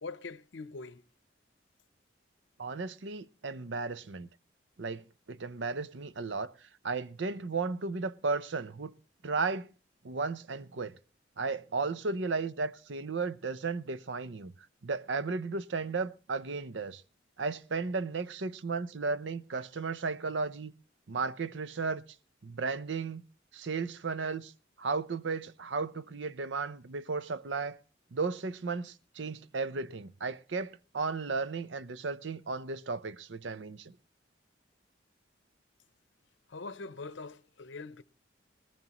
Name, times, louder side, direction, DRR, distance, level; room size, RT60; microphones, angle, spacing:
voice 1, 0.0-1.0 36.5-38.0, left 3 dB, 80° left, 0.7 m, -43 dB
voice 2, 2.6-4.3 4.8-6.5 6.8-8.9 9.2-9.7 10.0-10.9 11.4-14.5 14.8-17.0 17.4-20.7 21.1-22.0 22.4-23.2 23.5-24.5 24.8-27.8 28.1-33.9, right 4 dB, 80° right, 0.6 m, -34 dB
20.0 x 15.0 x 3.0 m
head